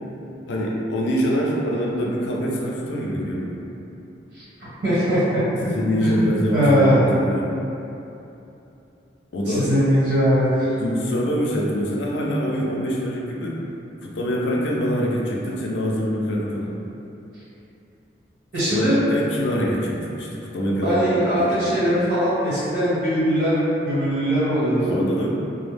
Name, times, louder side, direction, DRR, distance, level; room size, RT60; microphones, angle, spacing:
voice 1, 0.5-3.6 5.6-7.5 9.3-9.7 10.8-13.6 14.0-16.8 18.7-20.3 20.5-21.6 24.9-25.3, equal, 80° left, -3 dB, 0.4 m, -24 dB
voice 2, 4.3-5.4 6.0-6.2 6.5-7.0 9.5-10.8 18.5-19.0 20.8-25.0, equal, 70° right, -11 dB, 1.3 m, -21 dB
2.2 x 2.0 x 3.2 m, 2.9 s
head